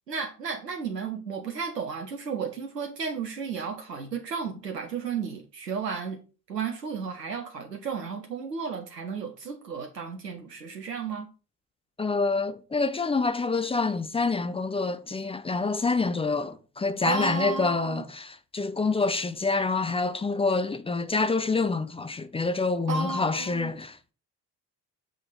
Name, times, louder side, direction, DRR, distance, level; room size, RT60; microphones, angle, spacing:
voice 1, 0.1-6.2 6.5-11.3 17.0-18.0 22.9-23.7, right 6 dB, 90° right, 0.7 m, -33 dB
voice 2, 12.0-24.1, left 3 dB, 10° left, 0.5 m, -27 dB
6.1 x 5.1 x 3.9 m
figure-of-eight pair, 50°, 47 cm